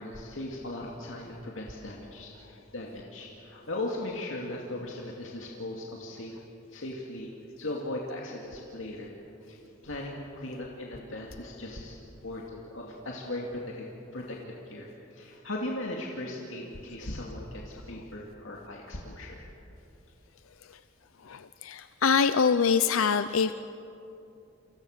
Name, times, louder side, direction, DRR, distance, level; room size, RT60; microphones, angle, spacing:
voice 1, 0.0-6.4 6.7-7.3 7.6-9.1 9.5-9.6 9.8-12.0 12.2-13.9 14.1-19.5, left 1 dB, 70° left, -2 dB, 2.5 m, -38 dB
voice 2, 21.2-23.5, left 6 dB, 90° left, 12 dB, 0.6 m, -25 dB
29.5 x 24.5 x 6.6 m, 2.9 s
head